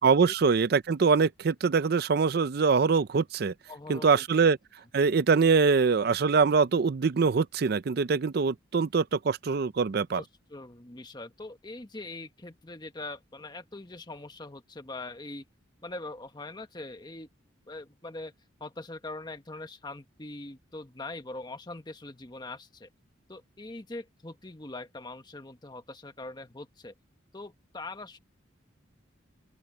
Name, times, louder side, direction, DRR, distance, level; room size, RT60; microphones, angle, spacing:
voice 1, 0.0-3.5 3.9-4.6 4.9-10.2, right 5 dB, 50° right, 0.4 m, -23 dB
voice 2, 3.7-4.5 10.1-15.4 15.8-17.3 17.7-18.3 18.6-22.9 23.3-26.9 27.3-28.2, left 2 dB, 20° left, 1.1 m, -42 dB
open air
head